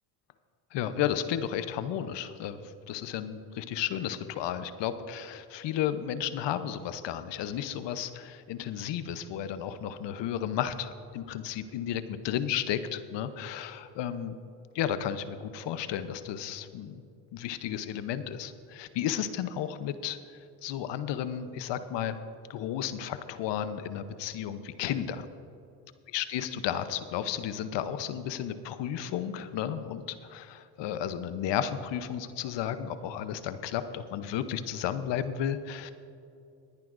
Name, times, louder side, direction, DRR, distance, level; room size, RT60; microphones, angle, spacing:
voice 1, 0.7-14.4 14.7-17.0 17.3-20.2 20.6-22.2 22.5-25.3 26.1-35.9, left 10 dB, 60° left, 11 dB, 0.9 m, -33 dB
20.5 x 10.5 x 2.6 m, 2.7 s
supercardioid pair, 75°, 48 cm